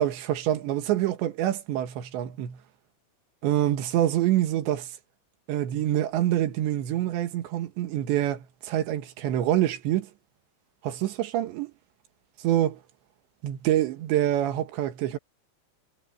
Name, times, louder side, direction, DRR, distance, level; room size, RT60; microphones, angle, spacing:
voice 1, 0.0-2.6 3.4-4.9 5.5-10.1 10.8-11.7 12.4-12.8 13.4-15.2, right 12 dB, 80° right, 3.8 m, -26 dB
omnidirectional pair, 5.2 m